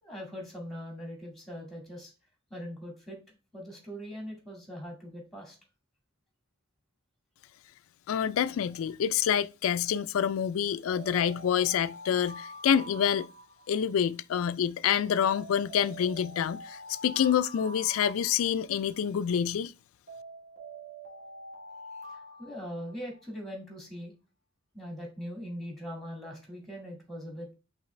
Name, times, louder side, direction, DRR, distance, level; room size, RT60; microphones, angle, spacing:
voice 1, 0.0-2.1 2.5-3.2 3.5-5.6 22.1-24.1 24.7-27.5, equal, ahead, 1.9 m, -41 dB
voice 2, 8.1-13.3 13.7-19.7, left 8 dB, 75° left, 0.3 m, -27 dB
sound 1, 10.9-14.1 15.2-19.0 20.1-23.3, right 1 dB, 45° right, 2.0 m, -46 dB
5.7 x 3.0 x 3.1 m
head